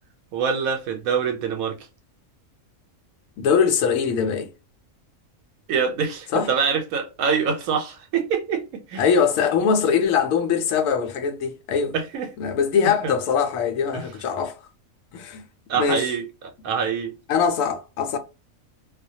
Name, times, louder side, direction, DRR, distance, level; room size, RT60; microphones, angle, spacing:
voice 1, 0.3-1.8 5.7-9.0 11.9-12.3 13.0-13.2 13.9-14.0 15.7-16.2 16.6-17.1, right 6 dB, 85° right, 1.0 m, -25 dB
voice 2, 3.4-4.5 6.3-6.5 9.0-11.9 12.4-14.6 15.1-15.4 15.7-16.1 17.3-18.2, left 6 dB, 75° left, 1.0 m, -22 dB
2.4 x 2.1 x 2.7 m
omnidirectional pair, 1.4 m